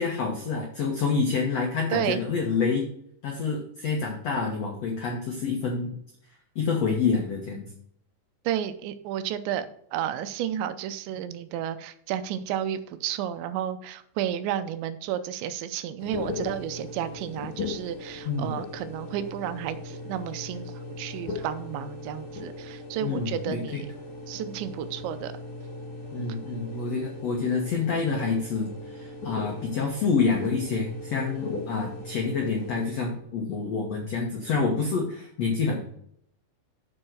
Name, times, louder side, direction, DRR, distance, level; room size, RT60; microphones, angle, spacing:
voice 1, 0.0-2.9 3.2-5.9 6.5-7.7 18.2-18.5 23.0-23.8 26.1-35.9, left 5 dB, 80° left, 0 dB, 1.4 m, -27 dB
voice 2, 8.5-9.7 9.9-23.9 24.3-25.3, right 10 dB, 85° right, 12 dB, 3.0 m, -32 dB
sound 1, 16.0-32.9, left 2 dB, 50° left, 2.8 m, -38 dB
7.7 x 6.5 x 6.1 m, 0.70 s
omnidirectional pair, 5.1 m